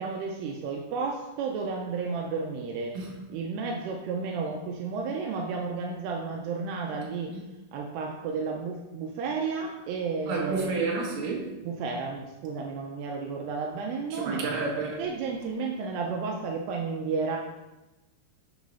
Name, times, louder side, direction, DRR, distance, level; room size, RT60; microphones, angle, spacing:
voice 1, 0.0-2.9 3.3-7.3 7.7-10.8 11.6-14.4 15.0-17.4, right 4 dB, 85° right, 1 dB, 2.8 m, -32 dB
voice 2, 10.3-11.6 14.1-15.0, right 4 dB, 60° right, -2 dB, 3.0 m, -30 dB
9.6 x 4.1 x 5.5 m, 1.0 s
omnidirectional pair, 4.6 m